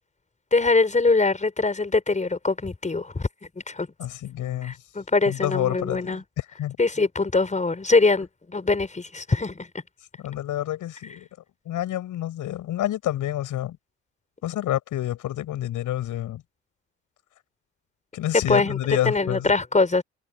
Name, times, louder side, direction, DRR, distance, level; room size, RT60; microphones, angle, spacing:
voice 1, 0.5-3.3 3.7-3.9 4.6-6.2 6.8-9.7 18.5-18.8 19.1-20.0, left 3 dB, 20° left, 5.2 m, -23 dB
voice 2, 4.0-4.8 5.3-6.8 10.2-11.3 11.7-13.8 14.4-16.4 18.1-19.5, left 13 dB, 65° left, 7.4 m, -28 dB
hypercardioid pair, 60°, 34 cm